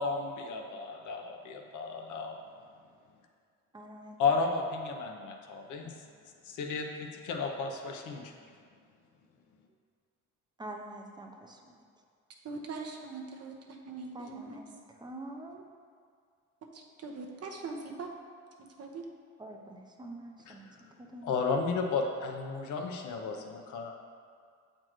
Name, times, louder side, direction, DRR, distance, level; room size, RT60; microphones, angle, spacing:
voice 1, 0.0-2.4 4.2-5.9 6.4-8.3 20.5-20.6 21.2-23.9, left 4 dB, 80° left, 2 dB, 0.8 m, -33 dB
voice 2, 3.7-4.2 10.6-11.8 14.1-15.6 19.4-20.6 21.0-21.3, right 1 dB, 15° right, 2 dB, 0.6 m, -45 dB
voice 3, 12.4-14.6 16.7-18.1 18.8-19.0, right 4 dB, 55° right, 1 dB, 0.9 m, -41 dB
7.6 x 4.4 x 3.0 m, 2.1 s
cardioid pair, 90°, 30 cm